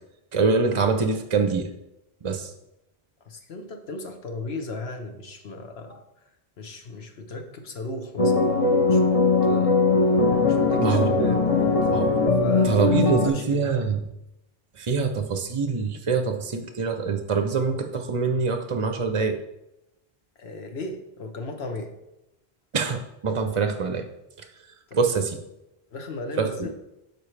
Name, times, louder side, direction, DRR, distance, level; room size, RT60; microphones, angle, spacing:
voice 1, 0.3-1.6 2.2-2.5 10.8-11.2 11.9-12.2 12.6-14.1 14.8-19.3 22.7-24.0 24.9-25.4 26.4-26.7, right 5 dB, 40° right, 6 dB, 0.5 m, -24 dB
voice 2, 3.2-6.0 6.6-9.0 9.4-9.8 10.4-11.9 12.4-13.7 20.4-21.9 24.9-25.0 25.9-26.7, left 2 dB, 80° left, 5 dB, 1.2 m, -36 dB
sound 1, 8.2-13.3, left 3 dB, 40° left, 0.8 m, -20 dB
12.0 x 4.6 x 3.3 m, 0.91 s
omnidirectional pair, 1.0 m